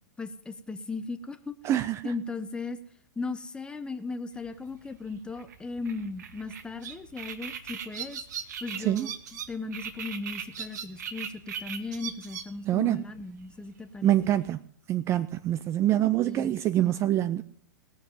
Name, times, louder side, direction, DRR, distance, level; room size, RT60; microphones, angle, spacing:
voice 1, 0.2-1.5 2.0-2.8 3.2-8.2 8.6-14.3 16.2-17.1, left 3 dB, 10° left, 10 dB, 0.9 m, -37 dB
voice 2, 1.6-2.1 8.8-9.1 12.7-13.0 14.0-14.6 14.9-17.4, right 13 dB, 25° right, 14 dB, 0.5 m, -25 dB
Sedge Warbler, 4.4-14.5, right 7 dB, 60° right, 1.4 m, -40 dB
19.0 x 7.2 x 5.4 m, 0.64 s
figure-of-eight pair, 105°, 11 cm